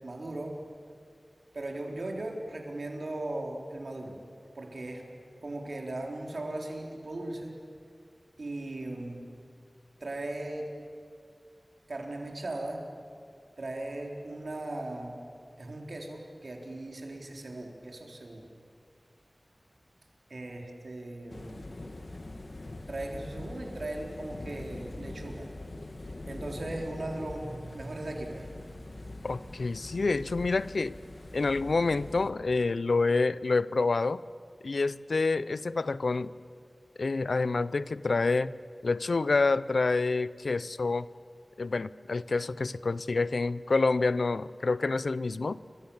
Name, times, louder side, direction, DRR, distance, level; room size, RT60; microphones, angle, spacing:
voice 1, 0.0-0.6 1.5-4.2 4.5-5.1 5.4-7.5 8.4-9.3 10.0-10.7 11.9-12.8 13.6-15.2 15.6-18.4 20.3-21.7 22.9-25.5 26.0-28.5, right 2 dB, 80° right, 1 dB, 4.0 m, -38 dB
sound 1, 21.3-32.3, left 2 dB, 60° left, 2.3 m, -43 dB
voice 2, 29.2-30.9 31.3-34.2 34.6-36.3 37.0-38.5 38.8-41.1 41.6-45.6, left 3 dB, 90° left, 17 dB, 0.6 m, -27 dB
29.5 x 24.0 x 7.3 m, 2.3 s
wide cardioid pair, 55°, 0 cm